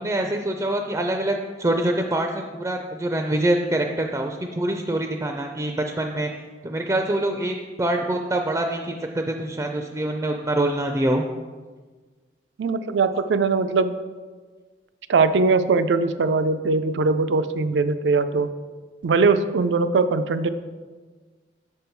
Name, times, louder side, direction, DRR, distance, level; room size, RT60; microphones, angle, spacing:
voice 1, 0.0-6.3 6.6-11.2, right 1 dB, 15° right, 4 dB, 0.4 m, -25 dB
voice 2, 12.6-13.9 15.1-18.5 19.0-20.5, right 4 dB, 85° right, 11 dB, 0.4 m, -21 dB
7.1 x 5.4 x 4.5 m, 1.4 s
head